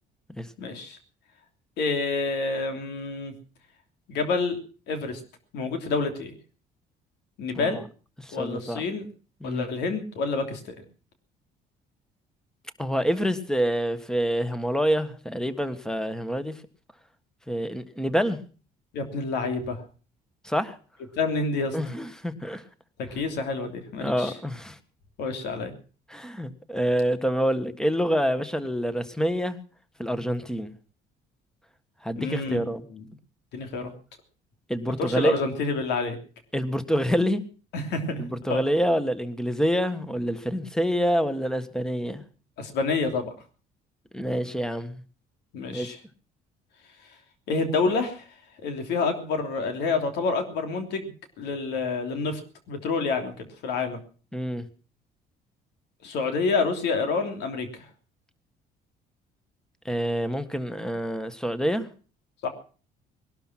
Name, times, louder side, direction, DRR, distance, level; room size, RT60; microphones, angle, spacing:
voice 1, 0.6-1.0 1.8-3.3 4.1-4.6 4.9-5.2 5.5-6.3 7.4-7.8 8.3-9.0 9.4-10.8 18.9-19.8 21.2-21.8 23.1-24.3 25.2-25.7 32.1-32.6 32.9-33.0 33.5-33.9 35.0-36.2 37.7-38.2 38.5-38.6 42.6-43.3 45.5-46.0 47.5-48.3 48.6-52.4 52.7-54.0 56.0-57.9 62.4-62.5, left 4 dB, 80° left, 6 dB, 3.1 m, -28 dB
voice 2, 8.2-8.8 9.4-9.7 12.8-16.6 17.5-18.4 20.4-20.8 21.7-22.6 24.0-24.8 26.1-29.6 30.0-30.7 32.0-32.8 34.7-35.3 36.5-37.4 38.2-42.2 44.1-45.0 45.7-45.9 54.3-54.7 59.8-61.9, equal, 5° left, 11 dB, 1.6 m, -27 dB
20.0 x 12.0 x 6.0 m, 0.40 s
cardioid pair, 110°, 17 cm